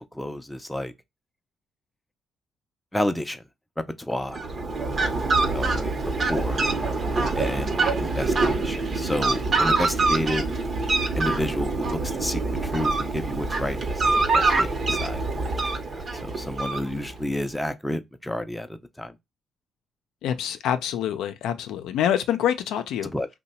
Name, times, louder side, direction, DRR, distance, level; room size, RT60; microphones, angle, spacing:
voice 1, 0.1-0.9 2.9-3.4 3.8-4.4 5.5-6.6 7.4-10.5 11.1-15.6 15.9-19.2 23.1-23.3, left 1 dB, 5° left, 0.5 m, -31 dB
Fowl, 4.3-17.3, right 3 dB, 45° right, 0.8 m, -25 dB
voice 2, 20.2-23.1, left 10 dB, 85° left, 0.4 m, -26 dB
2.8 x 2.2 x 4.1 m
cardioid pair, 90°, 0 cm